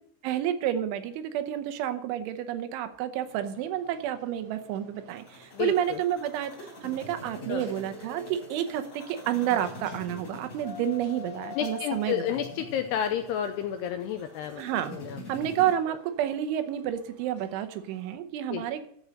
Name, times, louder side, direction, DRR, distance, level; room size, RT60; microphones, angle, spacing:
voice 1, 0.2-12.2 14.6-15.0 15.3-18.9, right 11 dB, 85° right, 9 dB, 3.4 m, -30 dB
sound 1, 3.2-18.1, left 8 dB, 55° right, 2.2 m, -50 dB
sound 2, 5.1-15.7, left 1 dB, 40° left, 4.6 m, -45 dB
voice 2, 5.5-6.0 7.5-7.6 11.6-14.6 14.9-15.2 18.5-18.6, left 9 dB, 85° left, 7 dB, 2.4 m, -31 dB
13.0 x 5.5 x 7.6 m, 0.68 s
omnidirectional pair, 5.3 m